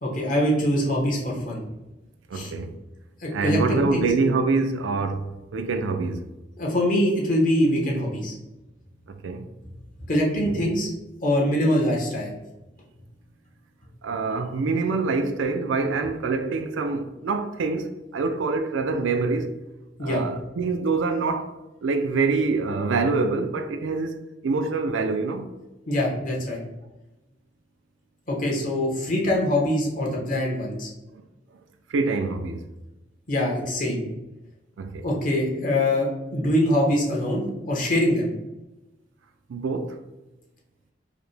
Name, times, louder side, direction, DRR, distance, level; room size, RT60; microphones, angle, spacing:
voice 1, 0.0-1.6 2.3-2.5 3.2-4.0 6.6-8.3 10.1-10.9 11.2-12.3 20.0-20.2 25.9-26.6 28.3-30.9 33.3-34.0 35.0-38.3, left 1 dB, 45° left, 0.9 m, -23 dB
voice 2, 2.3-2.7 3.3-6.2 9.1-9.5 14.0-17.9 18.1-19.5 20.0-21.5 21.8-24.2 24.4-25.5 31.9-32.6 34.8-35.0 39.5-40.0, right 4 dB, 85° right, 0.4 m, -25 dB
4.8 x 2.1 x 3.2 m
head